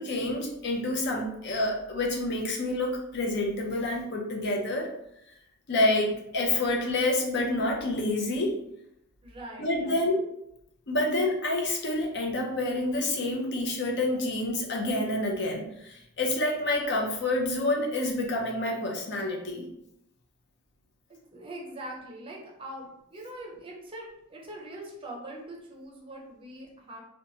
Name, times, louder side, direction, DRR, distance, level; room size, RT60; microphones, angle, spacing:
voice 1, 0.0-4.9 5.7-8.6 9.6-10.2 10.9-19.7, left 2 dB, 60° left, 0 dB, 0.6 m, -28 dB
voice 2, 9.2-10.1 21.1-27.0, right 1 dB, 25° right, -2 dB, 0.6 m, -43 dB
2.9 x 2.2 x 2.6 m, 0.80 s
head